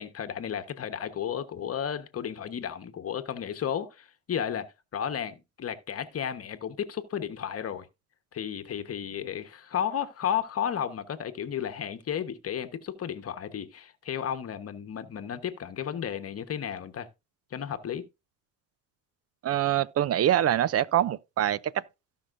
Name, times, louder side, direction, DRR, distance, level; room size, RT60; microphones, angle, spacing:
voice 1, 0.0-7.9 8.3-17.1 17.5-18.1, left 9 dB, 35° left, 1.2 m, -33 dB
voice 2, 19.4-21.6, right 11 dB, 35° right, 0.6 m, -24 dB
17.0 x 5.7 x 2.6 m
supercardioid pair, 85°, 40 cm